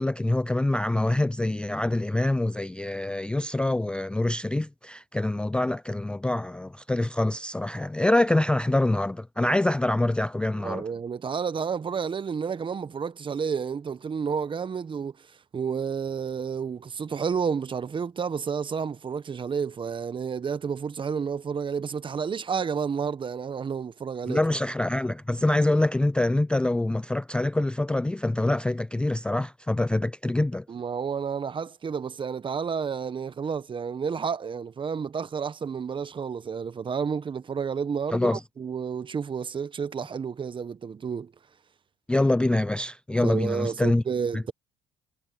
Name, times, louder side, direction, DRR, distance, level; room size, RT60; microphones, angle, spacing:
voice 1, 0.0-10.9 24.3-30.7 38.1-38.4 42.1-44.0 44.3-44.5, left 1 dB, 5° left, 0.4 m, -25 dB
voice 2, 10.6-15.1 15.5-24.4 30.7-41.3 43.2-44.5, right 6 dB, 35° right, 1.3 m, -30 dB
supercardioid pair, 75°, 14 cm